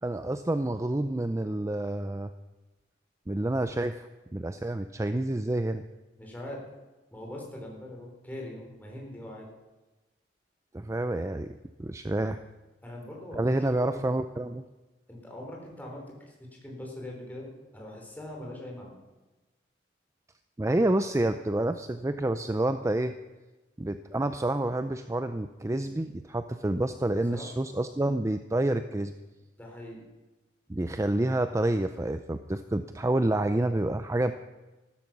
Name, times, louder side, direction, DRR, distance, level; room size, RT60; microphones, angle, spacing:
voice 1, 0.0-2.3 3.3-5.8 10.7-12.4 13.3-14.6 20.6-23.1 23.8-29.1 30.7-34.3, right 1 dB, 15° right, 10 dB, 0.5 m, -28 dB
voice 2, 6.2-6.6 7.1-9.5 12.8-14.1 15.1-19.0 27.3-27.5 29.6-30.0, left 1 dB, 10° left, -1 dB, 4.2 m, -42 dB
14.5 x 13.5 x 6.1 m, 1.1 s
head